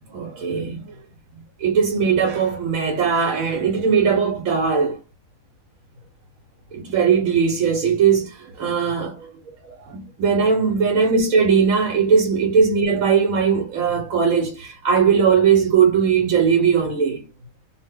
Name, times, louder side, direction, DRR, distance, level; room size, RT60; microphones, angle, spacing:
voice 1, 0.1-0.9 1.6-5.0 6.7-9.3 9.9-17.3, right 6 dB, 75° right, 1.1 m, -19 dB
2.4 x 2.1 x 3.5 m
omnidirectional pair, 1.5 m